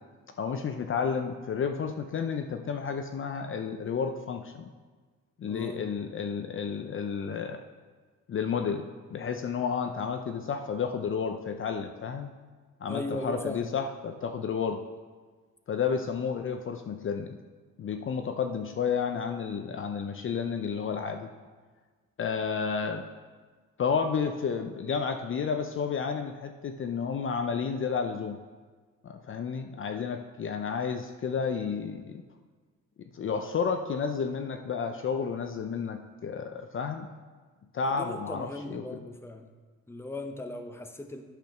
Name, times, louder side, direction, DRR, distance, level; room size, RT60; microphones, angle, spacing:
voice 1, 0.4-4.7 5.4-7.6 8.3-12.3 12.8-14.8 15.7-17.4 17.8-21.3 22.2-23.0 23.8-28.4 29.0-32.2 33.1-37.1 37.7-38.8, left 6 dB, 45° left, 6 dB, 0.6 m, -31 dB
voice 2, 5.5-5.9 12.9-13.8 37.8-39.5 39.9-41.2, left 1 dB, 10° left, 5 dB, 0.8 m, -38 dB
9.2 x 5.1 x 5.8 m, 1.4 s
cardioid pair, 90°, 30 cm